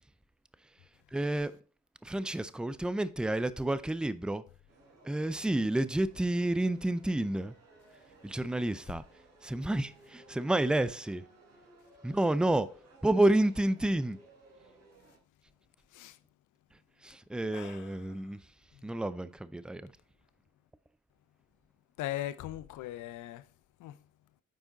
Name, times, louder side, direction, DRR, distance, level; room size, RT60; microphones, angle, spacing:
voice 1, 1.1-1.6 2.0-4.4 5.0-7.5 8.2-9.0 9.4-11.2 12.0-12.7 13.0-14.2 17.0-18.4 18.8-19.9, right 1 dB, 5° right, 0.4 m, -30 dB
sound 1, 4.7-15.2, right 2 dB, 55° right, 3.6 m, -59 dB
voice 2, 17.5-17.9 18.2-18.3 18.7-18.9 22.0-23.5 23.8-24.0, left 14 dB, 80° left, 0.6 m, -40 dB
9.0 x 4.9 x 3.9 m
cardioid pair, 90°, 30 cm